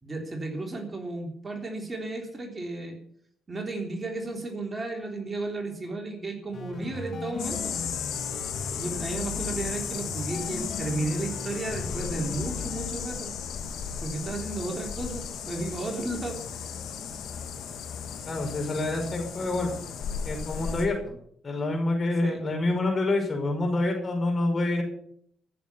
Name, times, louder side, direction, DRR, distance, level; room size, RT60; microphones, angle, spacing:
voice 1, 0.0-3.0 3.5-7.7 8.7-13.3 14.0-16.7 22.2-22.4, right 2 dB, 25° right, 1 dB, 3.6 m, -34 dB
sound 1, 6.5-12.9, left 4 dB, 60° left, 2.7 m, -37 dB
sound 2, 7.4-20.9, left 7 dB, 80° left, 2.8 m, -35 dB
voice 2, 18.2-19.7 20.3-21.1 21.4-24.8, left 2 dB, 40° left, 3 dB, 5.4 m, -27 dB
14.5 x 7.2 x 8.4 m, 0.67 s
cardioid pair, 90°, 0 cm